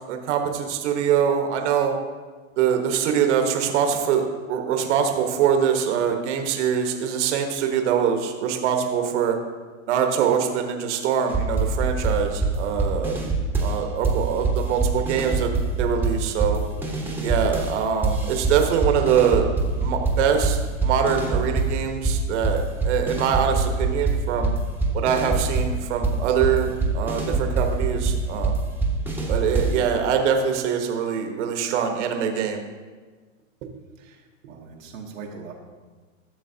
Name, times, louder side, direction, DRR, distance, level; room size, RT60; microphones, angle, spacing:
voice 1, 0.1-2.0 2.6-9.3 9.9-13.2 13.6-15.5 15.8-16.6 17.2-19.5 19.8-24.5 24.9-28.6 29.3-32.6, right 8 dB, 65° right, 4 dB, 1.3 m, -23 dB
sound 1, 11.3-13.8 14.0-17.7 18.0-21.8 22.0-29.8, right 3 dB, 5° right, 1.0 m, -24 dB
voice 2, 14.1-14.5 34.0-35.5, right 5 dB, 80° right, -1 dB, 1.3 m, -41 dB
12.5 x 6.7 x 2.8 m, 1.4 s
hypercardioid pair, 130°, 38 cm